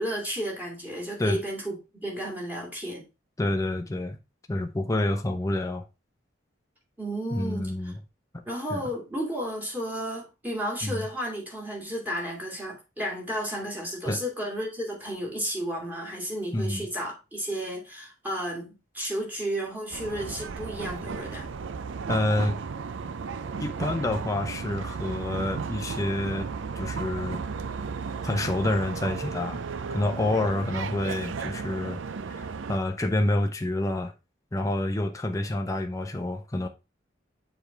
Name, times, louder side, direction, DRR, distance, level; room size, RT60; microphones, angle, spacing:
voice 1, 0.0-3.0 7.0-7.9 8.5-21.5, equal, 10° right, 2.2 m, -33 dB
voice 2, 3.4-4.2 4.5-5.8 7.3-8.0 8.3-8.4 8.7-8.8 10.8-11.1 14.1-14.2 16.5-16.8 22.1-22.6 23.6-26.5 26.8-27.4 28.2-29.6 29.9-32.0 32.3-34.1 34.5-36.7, left 1 dB, 20° left, 0.6 m, -28 dB
sound 1, 19.9-32.8, right 5 dB, 90° right, 0.5 m, -34 dB
6.9 x 3.5 x 4.4 m
head